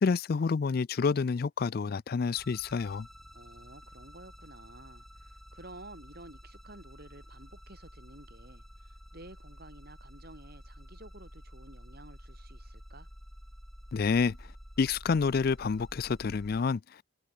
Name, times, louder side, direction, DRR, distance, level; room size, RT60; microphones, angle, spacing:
voice 1, 0.0-3.1 13.9-14.4 14.8-17.1, left 5 dB, 50° left, 0.4 m, -28 dB
sound 1, 2.3-16.6, equal, ahead, 2.0 m, -50 dB
voice 2, 3.3-13.1, right 1 dB, 50° right, 7.3 m, -52 dB
head